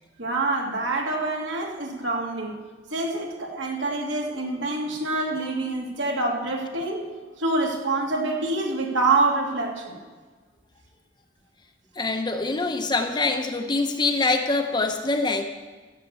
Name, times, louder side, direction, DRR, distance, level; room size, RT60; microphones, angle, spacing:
voice 1, 0.2-2.5 2.9-7.0 7.4-10.0, right 2 dB, 80° right, 0 dB, 2.5 m, -26 dB
voice 2, 12.0-15.4, left 3 dB, 25° left, 5 dB, 0.8 m, -24 dB
13.5 x 7.3 x 8.2 m, 1.4 s
head